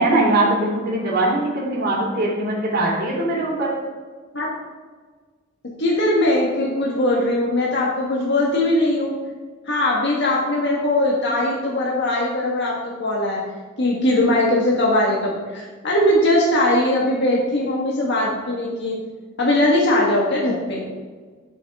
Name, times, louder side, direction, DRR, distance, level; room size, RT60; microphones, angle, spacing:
voice 1, 0.0-3.7, right 2 dB, 50° right, -3 dB, 3.3 m, -21 dB
voice 2, 5.8-9.1 9.7-13.4 13.8-19.0 19.4-20.8, left 1 dB, 60° left, -3 dB, 1.6 m, -20 dB
12.0 x 7.2 x 3.6 m, 1.5 s
head